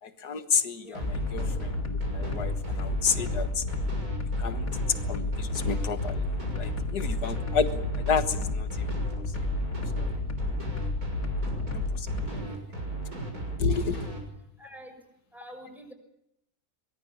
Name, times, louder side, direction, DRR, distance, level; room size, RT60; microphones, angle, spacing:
voice 1, 0.0-3.6 4.4-4.7 5.1-6.3 6.5-9.0 10.0-10.1 11.7-12.7 13.6-14.0, left 5 dB, 85° left, 9 dB, 2.0 m, -31 dB
sound 1, 0.9-14.2, right 2 dB, 65° right, 7.4 m, -35 dB
sound 2, 1.0-12.3, left 3 dB, 60° left, 2.2 m, -32 dB
voice 2, 14.6-14.9 15.3-15.9, equal, ahead, 5 dB, 6.4 m, -46 dB
23.0 x 21.5 x 8.6 m, 0.80 s
omnidirectional pair, 1.7 m